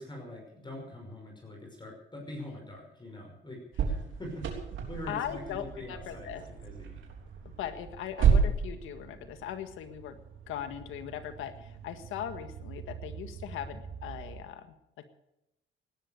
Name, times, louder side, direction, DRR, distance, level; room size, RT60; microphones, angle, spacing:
voice 1, 0.0-4.5 4.9-7.0, left 1 dB, 25° left, 0 dB, 5.7 m, -44 dB
sound 1, 3.7-14.4, right 6 dB, 75° right, 3.6 m, -33 dB
voice 2, 5.1-6.4 7.6-10.2 10.5-14.7, left 10 dB, 90° left, 9 dB, 1.7 m, -39 dB
17.5 x 11.5 x 6.6 m, 0.86 s
cardioid pair, 90°, 20 cm